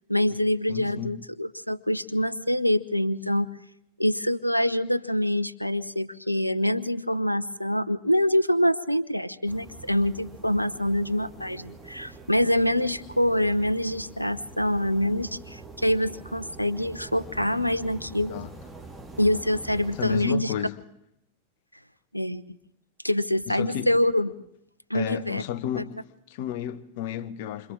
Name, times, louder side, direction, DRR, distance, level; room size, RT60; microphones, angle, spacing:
voice 1, 0.1-3.5 4.0-18.4 19.2-20.5 22.1-22.4 23.0-24.3 24.9-25.4, left 1 dB, 90° left, 0.8 m, -25 dB
voice 2, 0.7-1.2 18.3-18.5 19.9-20.8 23.5-23.9 24.9-26.0 26.3-27.7, left 10 dB, 50° left, 1.2 m, -32 dB
sound 1, 9.5-20.3, right 3 dB, 10° right, 2.5 m, -45 dB
28.5 x 26.0 x 3.7 m
figure-of-eight pair, 90°, 0 cm